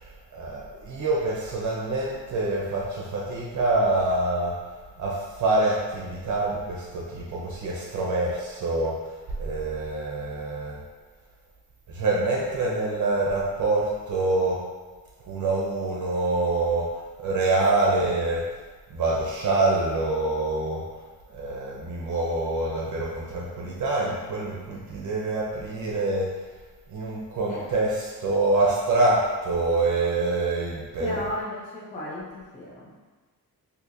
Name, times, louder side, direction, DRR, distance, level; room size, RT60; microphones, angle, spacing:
voice 1, 0.0-4.6 5.0-10.8 11.9-14.6 15.2-16.9 17.2-18.4 18.9-20.8 21.3-26.4 26.9-31.3, right 2 dB, 50° right, -4 dB, 0.7 m, -26 dB
voice 2, 31.0-32.9, left 1 dB, 20° left, -6 dB, 0.5 m, -35 dB
4.2 x 2.7 x 2.6 m, 1.3 s
wide cardioid pair, 160°, 37 cm